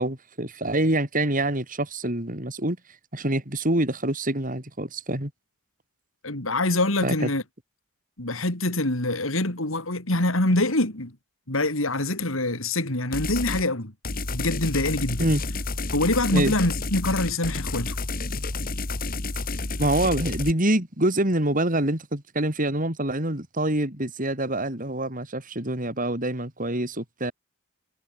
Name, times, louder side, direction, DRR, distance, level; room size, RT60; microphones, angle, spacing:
voice 1, 0.0-2.8 3.1-5.3 7.0-7.3 15.2-15.4 16.3-16.5 19.8-27.3, right 1 dB, 40° right, 5.1 m, -26 dB
voice 2, 6.2-7.4 8.2-11.1 11.5-13.9 14.3-15.3 15.9-18.0, left 2 dB, 80° left, 4.2 m, -25 dB
sound 1, 13.1-13.7 14.0-20.5, left 3 dB, 45° left, 1.7 m, -30 dB
head